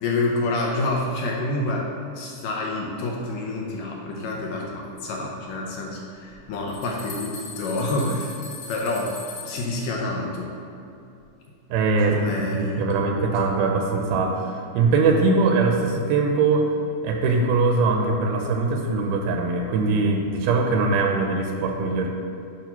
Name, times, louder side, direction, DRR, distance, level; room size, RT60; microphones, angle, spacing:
voice 1, 0.0-8.4 8.7-9.1 9.4-10.5 12.1-13.4, left 2 dB, 75° left, -2 dB, 2.1 m, -28 dB
sound 1, 6.3-6.4 6.7-9.8, left 3 dB, 40° left, 1.9 m, -39 dB
voice 2, 11.7-12.2 12.5-16.7 17.0-22.1, right 3 dB, 85° right, 2 dB, 2.4 m, -22 dB
9.0 x 3.5 x 5.6 m, 2.6 s
omnidirectional pair, 4.4 m